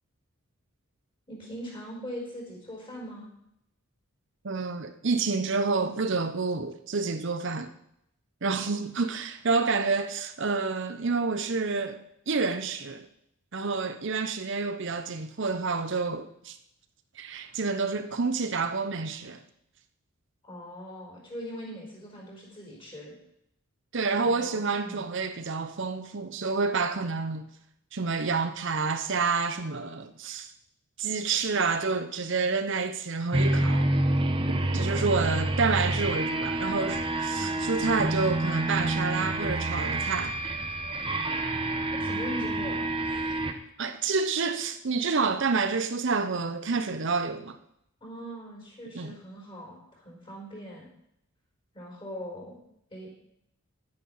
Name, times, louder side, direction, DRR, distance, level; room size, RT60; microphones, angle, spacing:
voice 1, 1.3-3.3 20.5-23.1 24.2-25.1 34.7-35.3 42.0-43.3 48.0-50.9 51.7-52.6 52.9-53.1, equal, 25° left, 4.6 m, -41 dB
voice 2, 4.4-7.7 8.4-13.1 13.5-16.6 17.2-19.4 23.9-27.5 27.9-30.5 31.0-33.9 34.5-40.4 43.8-47.6 48.9-49.2, right 4 dB, 55° right, 0.7 m, -29 dB
sound 1, 33.3-43.5, right 1 dB, 25° right, 1.0 m, -28 dB
11.0 x 9.6 x 5.6 m
head